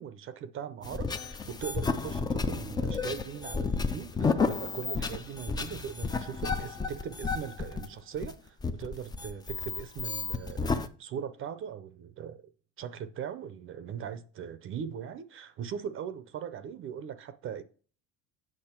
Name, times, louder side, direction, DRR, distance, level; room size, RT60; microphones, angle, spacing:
voice 1, 0.0-12.5 12.8-17.6, right 8 dB, 35° right, 0.6 m, -40 dB
sound 1, 0.8-10.9, left 4 dB, 10° left, 0.4 m, -32 dB
8.8 x 6.2 x 4.4 m
cardioid pair, 155°, 35 cm